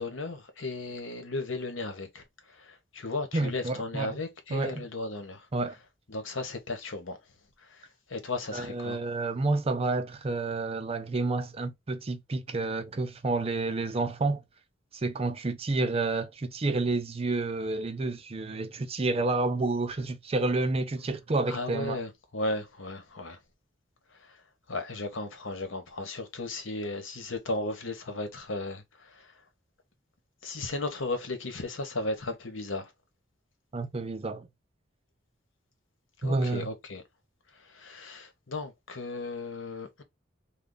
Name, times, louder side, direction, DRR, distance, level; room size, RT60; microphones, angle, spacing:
voice 1, 0.0-5.5 6.1-7.2 7.6-9.0 21.5-23.4 24.2-24.4 24.7-29.3 30.4-32.9 36.2-37.0 37.5-40.0, left 2 dB, 90° left, 1.1 m, -35 dB
voice 2, 3.3-4.2 4.5-4.8 5.5-5.8 8.5-14.4 14.9-22.0 33.7-34.5 36.2-36.7, right 3 dB, 30° right, 0.5 m, -29 dB
3.3 x 2.3 x 3.8 m
head